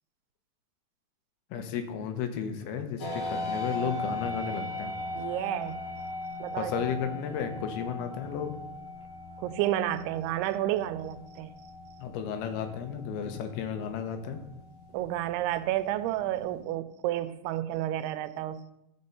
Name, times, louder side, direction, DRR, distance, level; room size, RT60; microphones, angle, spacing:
voice 1, 1.5-4.9 6.6-8.5 12.0-14.4, left 7 dB, 85° left, 7 dB, 3.0 m, -33 dB
sound 1, 3.0-16.6, left 1 dB, 55° left, 1.5 m, -39 dB
voice 2, 5.1-5.8 6.4-6.7 9.4-11.5 14.9-18.7, right 13 dB, 85° right, 12 dB, 2.6 m, -31 dB
14.5 x 5.3 x 5.5 m, 0.87 s
omnidirectional pair, 4.5 m